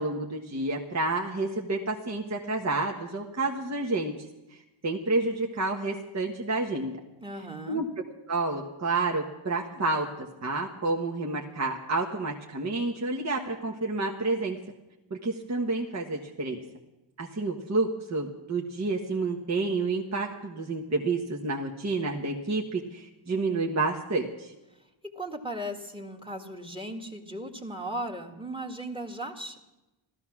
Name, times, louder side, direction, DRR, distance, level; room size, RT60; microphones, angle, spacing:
voice 1, 0.0-4.1 4.5-7.0 7.7-7.9 8.3-14.6 15.1-16.6 17.2-24.5, right 3 dB, 35° right, 1 dB, 1.4 m, -29 dB
voice 2, 7.2-7.8 25.0-29.6, right 1 dB, 10° right, 4 dB, 1.9 m, -37 dB
15.0 x 13.5 x 6.1 m, 1.0 s
cardioid pair, 90°, 49 cm